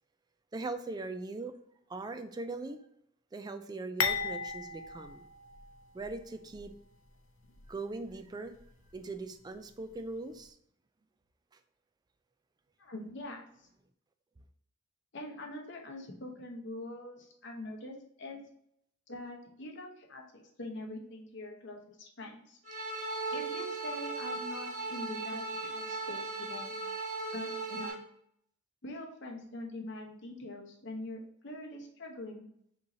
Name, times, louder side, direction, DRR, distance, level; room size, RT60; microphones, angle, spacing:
voice 1, 0.5-1.5 1.9-2.9 3.3-5.3 5.9-6.7 7.7-8.5 8.9-10.6, right 3 dB, 20° right, 9 dB, 0.3 m, -40 dB
sound 1, 4.0-6.2 6.5-6.7 7.5-7.7, left 6 dB, 75° left, 0.5 m, -35 dB
voice 2, 12.8-13.7 15.1-18.4 19.1-22.6 23.3-26.7 27.3-28.0 28.8-32.5, left 1 dB, 60° left, 2 dB, 0.9 m, -44 dB
sound 2, 22.6-27.9, right 3 dB, 35° right, 1.3 m, -37 dB
5.4 x 3.0 x 2.7 m, 0.72 s
head